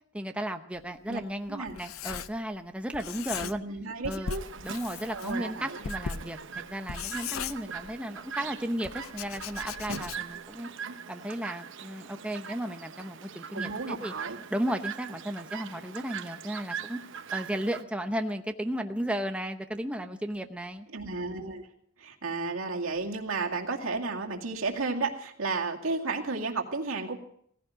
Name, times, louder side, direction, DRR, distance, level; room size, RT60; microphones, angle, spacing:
voice 1, 0.1-3.6 4.0-4.3 4.6-10.7 11.1-14.1 14.5-17.0 17.3-20.9, right 1 dB, 5° right, 6 dB, 0.8 m, -34 dB
Writing, 0.8-2.7 2.9-3.8 4.0-8.2 8.8-10.5, left 6 dB, 90° left, 0.7 m, -39 dB
voice 2, 3.4-4.4 5.1-5.8 10.9-11.0 13.5-14.4 20.9-21.7 22.0-27.2, right 3 dB, 85° right, 1 dB, 2.3 m, -33 dB
Chirp tweet, 4.3-17.8, right 6 dB, 65° right, 1.0 m, -41 dB
17.5 x 15.5 x 5.0 m, 0.64 s
head